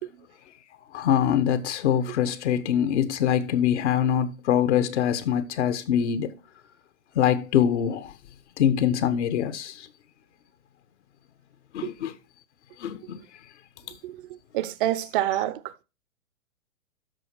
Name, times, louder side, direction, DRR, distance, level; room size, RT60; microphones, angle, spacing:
voice 1, 0.9-6.3 7.1-8.1 8.6-9.9 11.7-12.1 12.8-13.2, left 9 dB, 55° left, 1.1 m, -24 dB
voice 2, 14.0-15.8, right 14 dB, 40° right, 0.7 m, -29 dB
12.5 x 4.4 x 4.4 m
hypercardioid pair, 120°, 42 cm